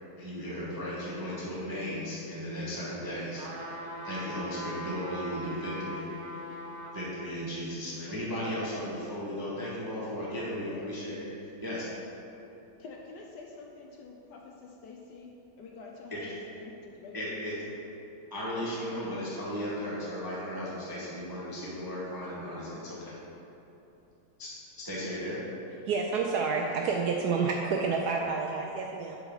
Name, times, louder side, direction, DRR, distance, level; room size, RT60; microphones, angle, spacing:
voice 1, 0.2-3.4 4.0-6.0 6.9-11.9 16.1-16.2 17.1-17.5 18.3-23.2 24.4-24.5 24.8-25.4, equal, 15° right, -7 dB, 0.8 m, -36 dB
sound 1, 3.4-7.0 7.5-7.6, equal, 50° right, 1.0 m, -40 dB
voice 2, 10.2-10.8 12.8-15.3 15.6-17.7, left 4 dB, 70° left, 0 dB, 1.1 m, -47 dB
voice 3, 25.9-29.2, right 5 dB, 75° right, 1 dB, 0.9 m, -29 dB
7.3 x 4.7 x 5.5 m, 3.0 s
omnidirectional pair, 2.1 m